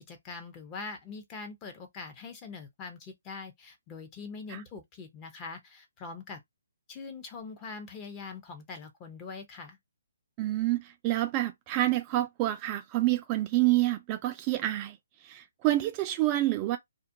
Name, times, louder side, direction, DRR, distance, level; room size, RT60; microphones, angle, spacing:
voice 1, 0.0-6.4 6.9-9.8, left 4 dB, 20° left, 0.7 m, -43 dB
voice 2, 10.4-15.0 15.2-16.8, right 16 dB, 25° right, 0.3 m, -28 dB
2.4 x 2.1 x 2.6 m
hypercardioid pair, 145°, 0 cm